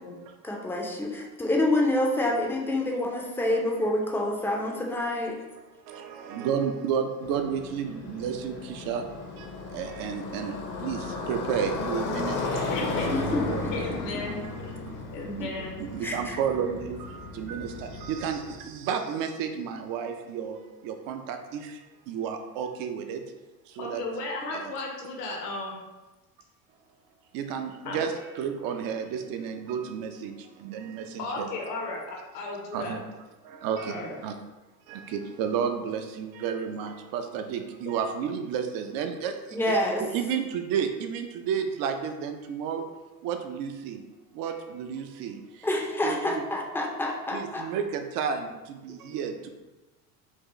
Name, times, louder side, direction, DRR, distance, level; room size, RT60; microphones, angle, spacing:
voice 1, 0.4-5.4 13.1-14.0 14.9-15.0 16.0-16.4 39.5-40.0 45.6-47.6, left 1 dB, 5° left, -1 dB, 0.5 m, -27 dB
voice 2, 3.1-3.6 5.9-12.7 13.1-13.2 13.5-13.8 14.4-14.9 15.8-23.3 23.7-24.0 24.5-24.6 27.3-31.5 32.7-33.0 33.4-34.4 34.9-39.6 40.0-42.9 43.2-44.0 44.3-45.7 46.0-46.4 47.3-49.5, right 7 dB, 45° right, 7 dB, 0.6 m, -32 dB
Motorcycle, 7.2-18.6, left 3 dB, 40° left, 0.8 m, -35 dB
voice 3, 12.7-13.1 13.7-14.3 15.1-15.8 23.8-25.8 27.8-28.0 31.2-32.9 33.8-34.2, left 2 dB, 70° left, -1 dB, 1.2 m, -34 dB
4.5 x 2.4 x 3.0 m, 1.1 s
hypercardioid pair, 85°, 49 cm